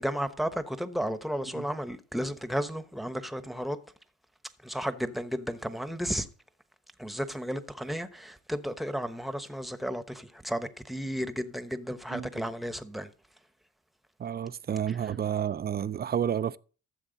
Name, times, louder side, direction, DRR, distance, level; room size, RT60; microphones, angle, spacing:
voice 1, 0.0-3.8 4.6-6.3 7.0-13.1 14.9-15.1, equal, ahead, 1.0 m, -33 dB
voice 2, 14.2-16.6, right 9 dB, 35° right, 0.5 m, -30 dB
14.0 x 7.2 x 4.0 m
cardioid pair, 90°, 30 cm